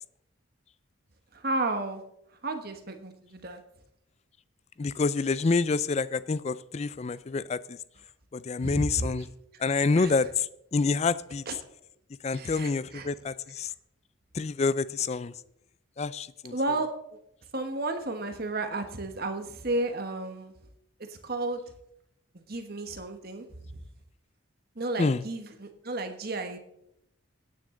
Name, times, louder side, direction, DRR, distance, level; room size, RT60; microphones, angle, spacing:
voice 1, 1.4-2.0 2.4-3.6 8.6-9.1 10.0-10.1 11.5-11.6 12.3-13.1 16.5-16.9 17.5-20.5 21.2-21.6 22.5-23.5 24.8-26.6, right 2 dB, 45° right, 1.3 m, -32 dB
voice 2, 4.8-7.8 8.3-9.3 9.6-11.4 12.2-13.7 14.3-15.3 16.0-16.5 25.0-25.2, left 4 dB, 30° left, 0.4 m, -27 dB
16.5 x 9.7 x 3.8 m
head